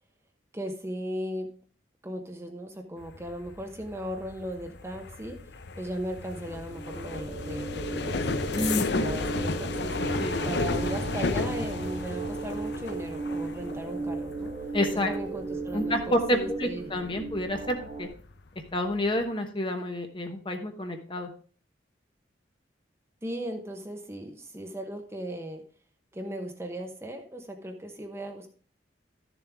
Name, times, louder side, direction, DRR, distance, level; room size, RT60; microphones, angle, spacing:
voice 1, 0.5-1.5 2.0-5.4 5.8-10.2 10.4-14.5 15.1-16.9 23.2-25.6 26.1-28.5, right 1 dB, 15° right, 4 dB, 1.0 m, -37 dB
sound 1, 3.0-17.6 18.0-18.4 18.7-19.1, left 3 dB, 65° left, 0.6 m, -34 dB
sound 2, 6.5-18.1, right 3 dB, 45° right, 1.7 m, -36 dB
voice 2, 8.5-9.1 10.2-10.5 14.7-15.1 15.7-18.1 18.7-21.3, equal, 25° left, 5 dB, 1.1 m, -29 dB
12.5 x 7.1 x 3.5 m, 0.41 s
head